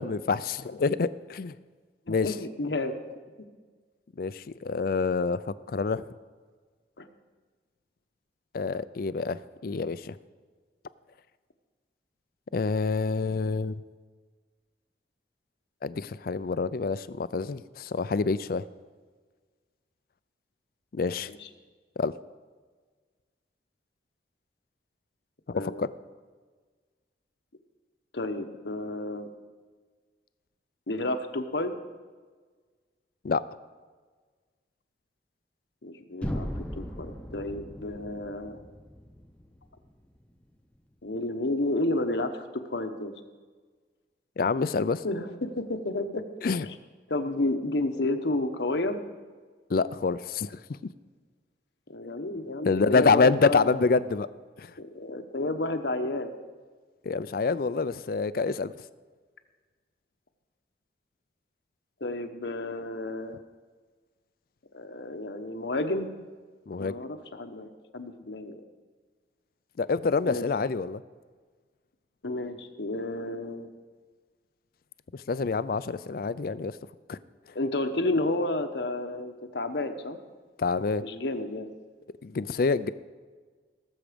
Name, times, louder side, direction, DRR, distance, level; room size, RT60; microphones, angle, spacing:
voice 1, 0.0-1.5 2.1-2.3 4.2-6.0 8.5-10.2 12.5-13.7 15.8-18.6 20.9-21.3 22.0-22.1 25.5-25.9 33.2-33.4 44.4-45.0 46.4-46.7 49.7-50.6 52.7-54.3 54.6-54.7 57.0-58.7 66.7-67.0 69.8-71.0 75.1-76.8 77.1-77.2 80.6-81.0 82.2-82.9, left 4 dB, 55° left, 16 dB, 0.4 m, -27 dB
voice 2, 2.1-3.0 7.0-7.1 21.3-21.5 25.5-25.8 28.1-29.3 30.9-31.7 35.8-38.6 41.0-43.1 45.0-46.2 46.7-46.8 47.1-49.0 51.9-53.8 54.8-56.3 62.0-63.4 64.7-66.1 66.8-68.6 70.3-70.5 72.2-73.7 77.5-80.2 81.0-81.7, left 2 dB, 75° left, 6 dB, 1.0 m, -31 dB
sound 1, 36.2-40.2, equal, 5° left, 0.7 m, -38 dB
18.0 x 7.3 x 5.1 m, 1.5 s
head